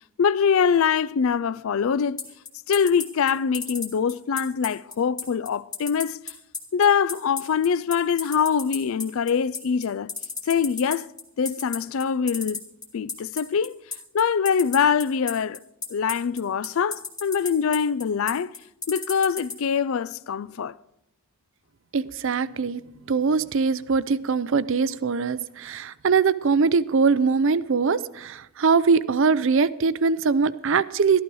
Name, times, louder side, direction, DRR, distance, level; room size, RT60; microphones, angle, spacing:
voice 1, 0.2-2.2 2.7-6.2 6.7-10.1 10.5-11.1 11.4-12.6 12.9-13.7 14.1-15.6 15.9-18.5 18.9-20.7, left 6 dB, 65° left, 0.4 m, -23 dB
sound 1, 2.2-19.5, left 4 dB, 20° left, 1.4 m, -32 dB
voice 2, 21.9-22.8 23.1-31.2, right 5 dB, 60° right, 0.5 m, -22 dB
13.0 x 12.0 x 4.7 m
head